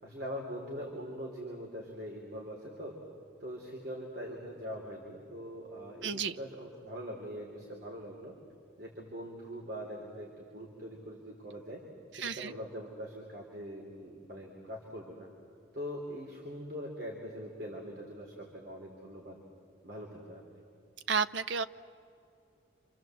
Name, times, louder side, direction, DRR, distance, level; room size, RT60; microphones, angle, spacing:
voice 1, 0.0-3.0 3.4-8.3 8.8-11.8 12.1-15.3 15.7-19.4 19.8-20.4, equal, 60° right, -1 dB, 3.5 m, -42 dB
voice 2, 6.0-6.3 12.2-12.5 21.1-21.6, right 6 dB, 80° right, 13 dB, 0.7 m, -31 dB
29.0 x 26.5 x 7.8 m, 2.6 s
head